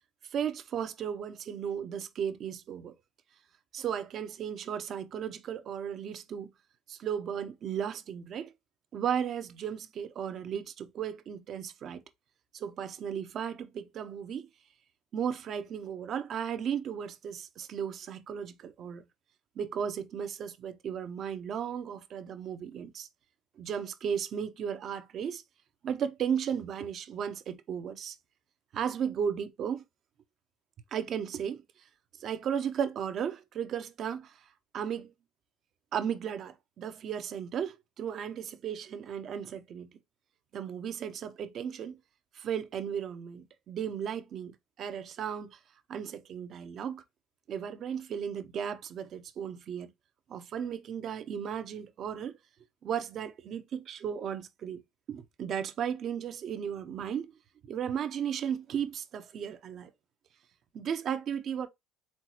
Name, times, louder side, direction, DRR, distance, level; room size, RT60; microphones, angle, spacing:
voice 1, 0.3-2.9 3.7-6.5 6.9-8.5 8.9-12.0 12.5-14.5 15.1-19.0 19.6-23.1 23.6-25.4 25.8-28.2 28.7-29.8 30.9-31.6 32.2-34.4 34.7-35.1 35.9-39.9 40.5-42.0 42.4-45.6 45.9-47.0 47.5-49.9 50.3-52.3 52.8-54.8 55.1-57.3 57.6-59.9 60.7-61.7, right 8 dB, 50° right, 0.7 m, -35 dB
4.5 x 3.7 x 2.9 m
supercardioid pair, 80°, 0 cm